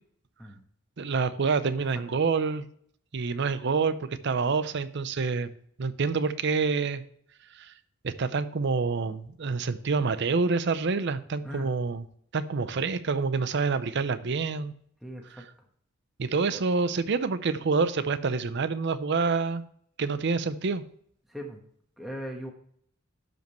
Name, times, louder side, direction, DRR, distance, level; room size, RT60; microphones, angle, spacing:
voice 1, 1.0-2.7 3.1-5.5 5.8-7.0 7.5-7.7 8.0-12.0 12.3-14.7 15.3-15.5 16.2-19.6 20.0-20.8, right 4 dB, 60° right, 13 dB, 0.6 m, -27 dB
voice 2, 15.0-15.4 16.5-16.6 21.3-21.6 22.0-22.5, equal, ahead, 1 dB, 1.2 m, -39 dB
12.0 x 5.2 x 3.0 m, 0.63 s
head